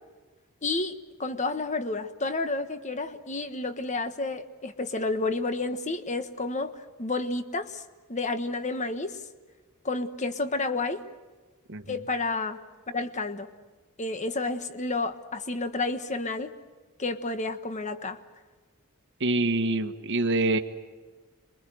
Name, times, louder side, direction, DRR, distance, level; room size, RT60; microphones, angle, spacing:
voice 1, 0.6-6.7 7.0-7.8 8.1-9.2 9.8-11.0 11.9-12.6 12.9-13.5 14.0-16.5 17.0-18.2, left 3 dB, 30° left, 9 dB, 1.3 m, -30 dB
voice 2, 11.7-12.0 19.2-20.6, right 2 dB, 55° right, 6 dB, 1.5 m, -26 dB
27.5 x 22.5 x 7.8 m, 1.3 s
head